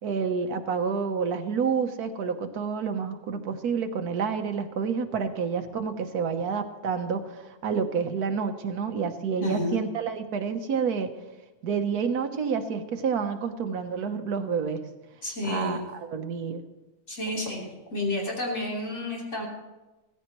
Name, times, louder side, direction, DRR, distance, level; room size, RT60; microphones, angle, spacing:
voice 1, 0.0-11.1 11.6-14.8 15.4-16.6, right 6 dB, 85° right, 6 dB, 1.5 m, -29 dB
voice 2, 9.4-9.8 15.2-15.8 17.1-17.6 17.9-19.5, left 2 dB, 50° left, -4 dB, 3.7 m, -30 dB
16.0 x 15.0 x 3.1 m, 1.1 s
omnidirectional pair, 1.6 m